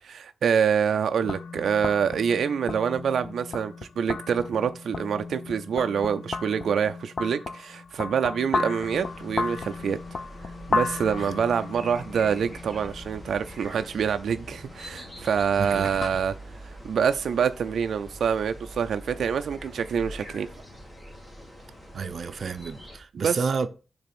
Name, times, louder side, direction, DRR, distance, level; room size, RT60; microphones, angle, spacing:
voice 1, 0.0-10.0 10.4-20.5 23.1-23.4, right 7 dB, 90° right, 0.4 m, -26 dB
sound 1, 1.2-16.1, left 4 dB, 50° left, 0.5 m, -35 dB
sound 2, 8.8-23.0, right 1 dB, 10° left, 1.6 m, -44 dB
voice 2, 21.9-23.7, right 5 dB, 50° right, 0.7 m, -30 dB
6.7 x 3.5 x 5.9 m
wide cardioid pair, 180°, 0 cm